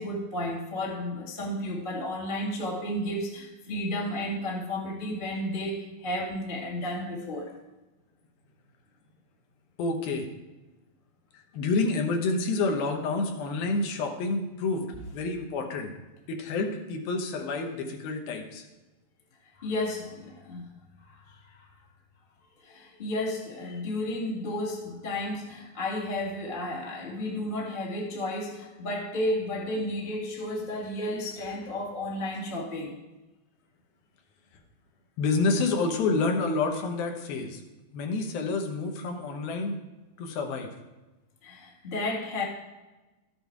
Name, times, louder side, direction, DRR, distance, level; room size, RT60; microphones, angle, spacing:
voice 1, 0.0-7.5 19.6-20.7 21.0-21.7 22.6-32.9 41.4-42.4, left 1 dB, 30° left, -2 dB, 0.9 m, -32 dB
voice 2, 9.8-10.3 11.3-14.9 15.1-15.9 16.3-18.6 35.2-37.6 37.9-39.8 40.2-40.7, left 3 dB, 75° left, 3 dB, 3.0 m, -28 dB
13.0 x 7.8 x 4.6 m, 1.1 s
omnidirectional pair, 4.3 m